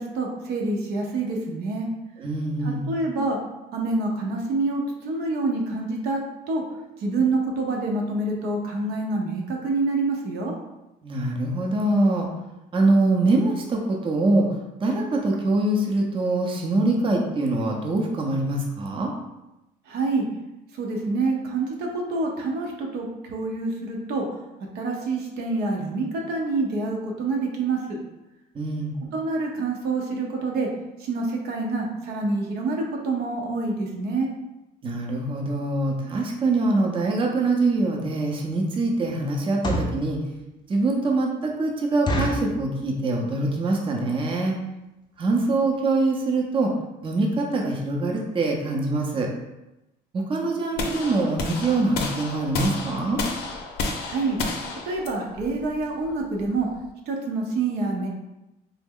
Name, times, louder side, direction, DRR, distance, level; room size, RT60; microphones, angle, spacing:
voice 1, 0.0-1.9 2.6-3.4 3.7-6.6 7.0-10.5 19.9-20.3 20.7-24.2 24.7-28.0 29.1-30.7 31.0-34.3 54.0-54.4 54.8-56.7 57.1-58.1, right 3 dB, 75° right, 0 dB, 0.7 m, -27 dB
voice 2, 2.2-2.8 11.0-12.3 12.7-14.5 14.8-19.1 28.5-29.0 34.8-40.2 40.7-44.5 45.2-46.7 47.0-49.3 50.1-53.2, right 2 dB, 30° right, 0 dB, 0.5 m, -24 dB
sound 1, 37.8-38.0 38.5-38.7 39.4-40.0 40.6-40.7 41.0-41.1 41.5-41.6 42.1-42.6 43.2-43.4 43.7-43.8 44.0-44.3 44.8-44.9 45.2-45.3 45.7-45.8 46.0-46.1, equal, 25° left, 0.4 m, -27 dB
sound 2, 50.8-56.9, left 3 dB, 75° left, 0.6 m, -32 dB
3.2 x 2.0 x 3.6 m, 0.95 s
cardioid pair, 110°, 17 cm